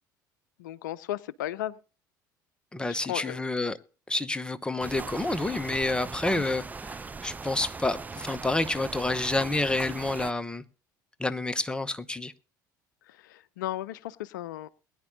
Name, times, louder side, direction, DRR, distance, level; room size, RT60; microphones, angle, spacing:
voice 1, 0.6-1.8 2.9-3.5 6.3-6.5 13.1-14.7, left 13 dB, 75° left, 0.4 m, -35 dB
voice 2, 2.7-3.8 4.1-10.6 11.2-12.3, left 2 dB, 10° left, 0.9 m, -29 dB
sound 1, 4.8-10.3, right 4 dB, 15° right, 0.5 m, -39 dB
22.0 x 9.9 x 2.6 m
figure-of-eight pair, 65°, 10 cm